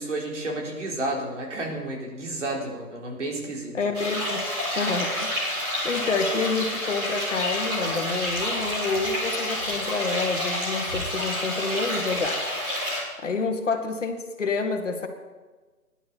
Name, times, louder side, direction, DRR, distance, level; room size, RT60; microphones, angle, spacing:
voice 1, 0.0-3.8, right 2 dB, 55° right, -1 dB, 3.8 m, -31 dB
voice 2, 3.7-4.4 4.8-12.4 13.2-15.1, left 4 dB, 55° left, 5 dB, 1.9 m, -28 dB
sound 1, 3.9-13.0, left 1 dB, 10° right, 2.6 m, -29 dB
18.0 x 11.0 x 4.2 m, 1.3 s
hypercardioid pair, 165°, 44 cm